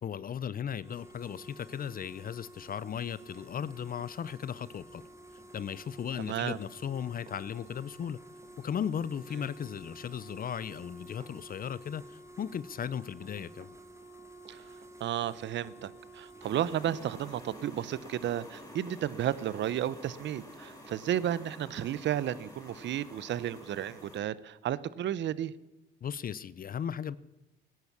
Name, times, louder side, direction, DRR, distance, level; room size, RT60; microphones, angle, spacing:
voice 1, 0.0-5.0 5.5-8.2 8.6-13.7 26.0-27.2, left 8 dB, 45° left, 18 dB, 0.6 m, -36 dB
sound 1, 0.7-17.5, right 1 dB, 15° right, 2.2 m, -52 dB
Run, 3.2-19.9 20.2-20.3, right 4 dB, 40° right, 2.8 m, -60 dB
voice 2, 6.2-6.6 14.5-14.6 15.0-25.5, right 11 dB, 65° right, 19 dB, 0.8 m, -33 dB
sound 2, 16.4-24.2, left 1 dB, 15° left, 5.9 m, -49 dB
18.0 x 10.5 x 7.3 m, 0.99 s
cardioid pair, 90°, 20 cm